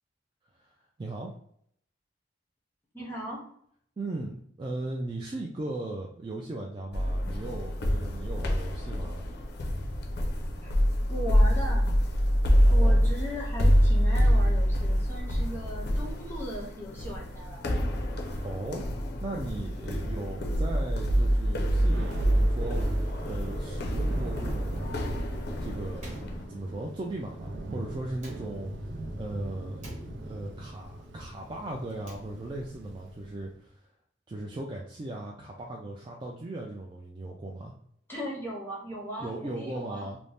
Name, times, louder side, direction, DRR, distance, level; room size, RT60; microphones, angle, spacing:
voice 1, 0.6-1.3 4.0-9.2 12.6-13.0 18.4-18.8 19.2-22.8 23.2-24.9 25.6-26.1 26.4-29.9 30.2-33.7 34.3-37.7 39.2-40.2, right 2 dB, 25° right, -2 dB, 0.3 m, -38 dB
voice 2, 2.9-3.4 10.6-10.8 11.1-11.9 12.7-18.0 38.1-40.1, equal, 10° left, -4 dB, 0.6 m, -38 dB
sound 1, 6.9-26.4, equal, 65° left, 0.5 m, -26 dB
Thunder / Rain, 20.6-33.5, right 1 dB, 90° right, 0.4 m, -41 dB
Slam, 26.0-27.1 28.1-29.1 29.8-30.7 31.8-32.8, right 1 dB, 40° right, 0.9 m, -47 dB
2.6 x 2.0 x 3.2 m, 0.66 s
head